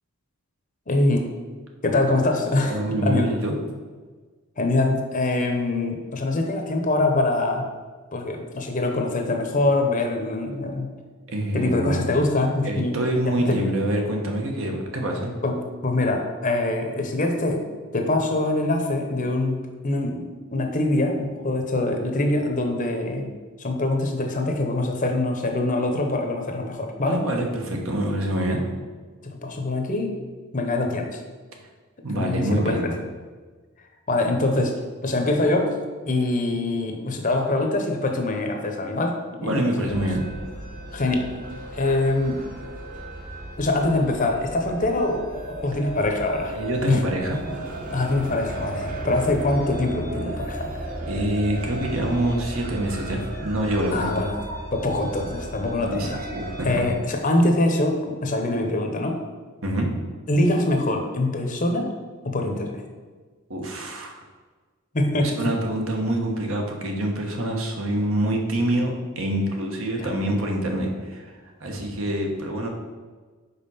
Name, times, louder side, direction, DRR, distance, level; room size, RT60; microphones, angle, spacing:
voice 1, 0.9-1.3 1.8-3.3 4.6-7.7 8.1-10.9 11.5-13.0 13.2-13.7 15.4-17.6 17.9-23.3 23.6-27.2 29.2-30.1 30.5-31.2 32.1-32.9 34.1-34.7 35.0-35.7 36.1-39.5 39.8-40.0 40.9-41.4 41.7-42.4 43.6-46.6 46.9-47.0 47.9-50.7 53.9-54.4 54.7-56.2 56.6-59.2 60.3-61.9 62.2-62.8 64.9-65.4 70.0-70.1, left 2 dB, 35° left, 3 dB, 0.8 m, -24 dB
voice 2, 2.6-3.5 11.3-12.1 12.6-15.3 27.0-28.6 32.0-32.9 39.4-40.2 46.5-47.4 51.1-54.1 55.9-56.8 59.6-59.9 63.5-64.2 65.2-71.3 71.6-72.7, right 1 dB, 70° right, 1 dB, 1.1 m, -26 dB
sound 1, 39.9-56.9, right 1 dB, 40° right, 1.0 m, -35 dB
5.4 x 4.7 x 5.5 m, 1.4 s
head